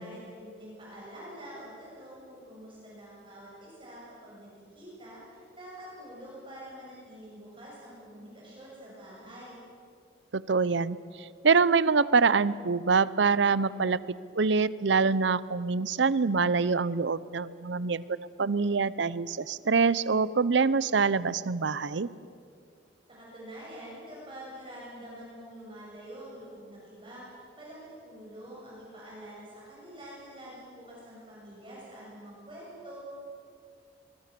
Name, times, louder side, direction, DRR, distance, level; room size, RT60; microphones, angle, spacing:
voice 1, 0.0-9.6 23.1-33.0, equal, 25° right, -6 dB, 7.5 m, -46 dB
voice 2, 10.3-14.0 14.4-22.1, right 4 dB, 75° right, 18 dB, 0.6 m, -25 dB
23.5 x 23.5 x 6.9 m, 2.3 s
head